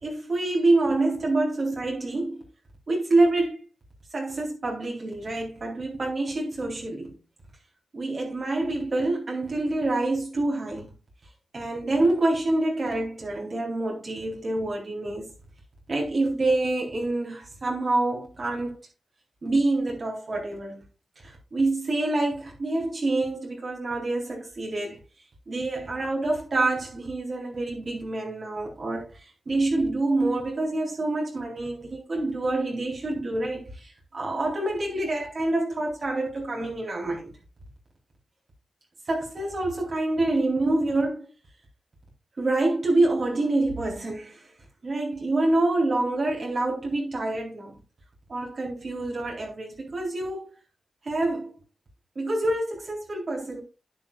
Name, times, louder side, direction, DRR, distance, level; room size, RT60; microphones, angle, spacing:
voice 1, 0.0-2.4 2.9-3.7 4.1-7.2 7.9-10.9 11.5-15.3 15.9-18.8 19.4-20.9 21.2-25.0 25.5-37.3 39.1-41.3 42.4-44.5 44.8-47.8 48.3-50.5 51.0-51.6 52.2-53.6, right 2 dB, 45° right, 4.0 m, -27 dB
10.5 x 10.0 x 2.4 m
wide cardioid pair, 110°, 0 cm